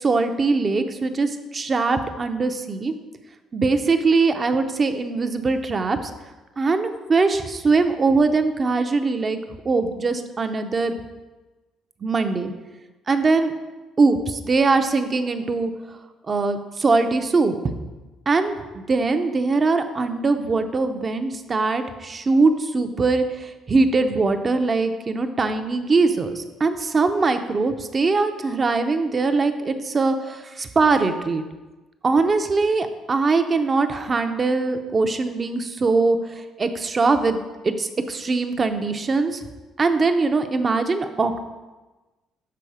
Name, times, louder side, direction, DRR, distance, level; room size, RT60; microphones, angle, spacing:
voice 1, 0.0-2.9 3.5-6.1 6.6-9.4 9.6-10.9 12.0-12.5 13.1-13.5 14.0-15.7 16.3-17.5 18.3-31.4 32.0-39.4 39.8-41.4, right 3 dB, 35° right, 8 dB, 0.6 m, -21 dB
6.8 x 3.8 x 4.8 m, 1.2 s
supercardioid pair, 80°, 0 cm